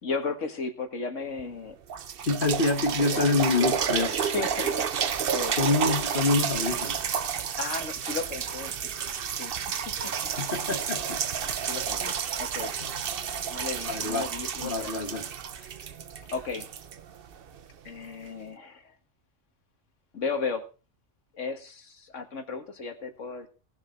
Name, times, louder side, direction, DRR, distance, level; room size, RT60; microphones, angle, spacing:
voice 1, 0.0-1.8 3.0-3.2 3.5-3.6 4.1-5.6 7.6-8.7 9.0-9.1 9.4-9.8 10.0-10.3 11.6-12.7 13.5-15.0 15.6-15.7 16.3-16.7 17.8-18.9 20.1-20.7 21.3-23.5, left 4 dB, 85° left, 2.0 m, -35 dB
sound 1, 1.4-1.5 1.9-17.6 18.3-18.4, right 7 dB, 55° right, 0.9 m, -31 dB
voice 2, 2.3-4.3 5.6-7.0 10.4-11.2 12.0-12.1 12.8-13.0 13.8-14.3 14.6-15.3, left 3 dB, 45° left, 1.5 m, -26 dB
18.5 x 6.8 x 4.5 m
omnidirectional pair, 1.2 m